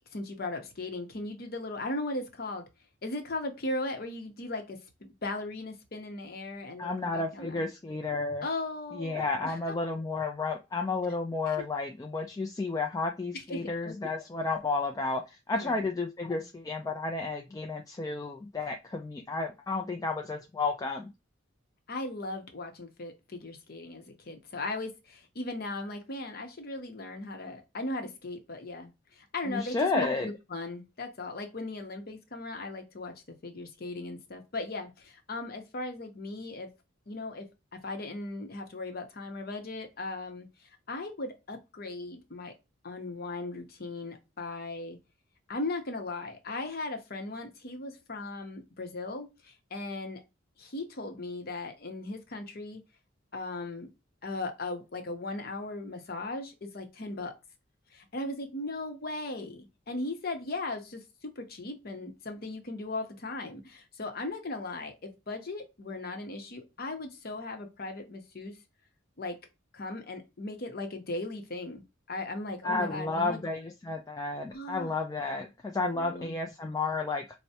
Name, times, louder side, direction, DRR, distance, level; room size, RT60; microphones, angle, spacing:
voice 1, 0.1-2.7 3.0-7.7 8.4-9.6 11.6-11.7 13.5-14.0 15.5-15.9 21.9-36.7 37.1-40.5 40.9-42.5 42.8-45.0 45.5-50.2 50.6-52.8 53.3-53.9 54.2-57.3 57.9-68.5 69.2-69.4 69.7-73.4 74.5-74.9 75.8-76.4, left 2 dB, 50° left, 5 dB, 0.8 m, -38 dB
voice 2, 6.8-8.4 8.9-21.1 29.5-30.3 72.6-77.3, left 3 dB, 20° left, 3 dB, 0.3 m, -32 dB
4.5 x 2.1 x 2.7 m, 0.25 s
head